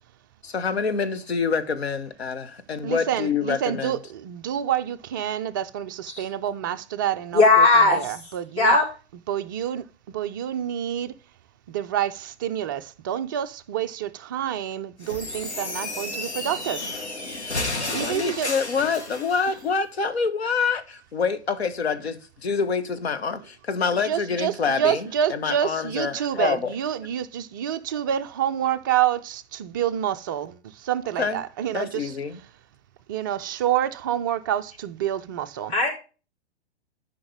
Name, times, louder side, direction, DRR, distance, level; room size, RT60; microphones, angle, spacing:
voice 1, 0.4-3.9 17.9-26.7 31.2-31.4 31.7-32.4, left 5 dB, 65° left, 1.5 m, -26 dB
voice 2, 2.8-8.7 9.3-11.1 11.7-16.9 17.9-18.5 24.0-32.1 33.1-35.7, right 10 dB, 20° right, 0.4 m, -28 dB
voice 3, 7.3-8.1 8.6-8.8 35.7-35.9, left 3 dB, 30° left, 4.2 m, -17 dB
sound 1, 15.0-19.4, left 2 dB, 80° left, 3.4 m, -32 dB
12.5 x 5.7 x 3.4 m
figure-of-eight pair, 115°, 34 cm